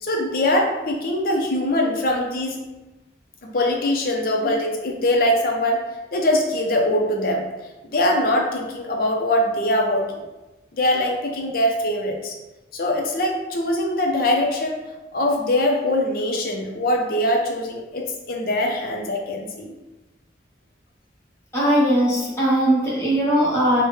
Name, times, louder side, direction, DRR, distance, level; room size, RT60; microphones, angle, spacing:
voice 1, 0.0-2.6 3.4-5.8 6.1-7.5 7.9-10.1 10.7-12.4 12.7-14.8 15.1-19.7, left 1 dB, 50° left, 1 dB, 0.5 m, -22 dB
voice 2, 21.5-23.8, equal, 15° left, -8 dB, 0.9 m, -19 dB
3.4 x 2.1 x 3.1 m, 1.1 s
head